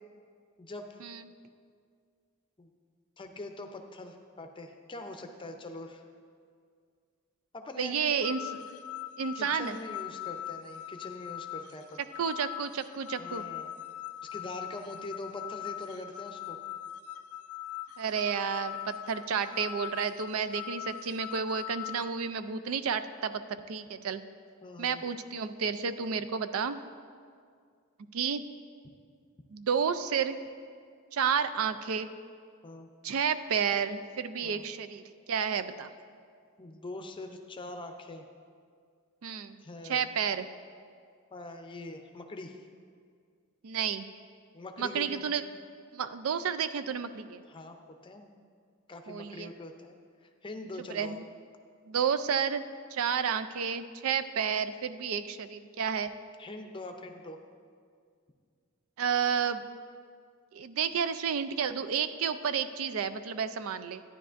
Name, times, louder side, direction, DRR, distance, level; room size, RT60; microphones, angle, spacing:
voice 1, 0.6-1.0 2.6-2.7 3.2-6.0 7.5-8.0 9.3-12.0 13.2-13.7 14.3-16.6 24.6-25.0 32.6-32.9 34.4-34.6 36.6-38.3 39.6-40.1 41.3-42.6 44.5-45.3 47.5-48.3 48.9-50.0 50.2-51.2 56.4-57.4, left 2 dB, 25° left, 5 dB, 0.5 m, -43 dB
voice 2, 7.8-8.6 9.2-9.8 12.2-13.4 18.0-24.2 24.8-26.8 28.1-28.4 29.5-30.4 31.1-32.1 33.0-35.0 35.3-35.9 39.2-39.6 39.8-40.4 43.6-44.1 44.8-45.4 45.9-47.4 49.1-49.5 50.9-51.2 51.9-52.6 52.9-56.1 59.0-59.7 60.5-64.0, right 7 dB, 75° right, 12 dB, 0.4 m, -31 dB
sound 1, 8.2-22.1, left 12 dB, 85° left, 0.4 m, -41 dB
12.5 x 10.0 x 2.5 m, 2.1 s
head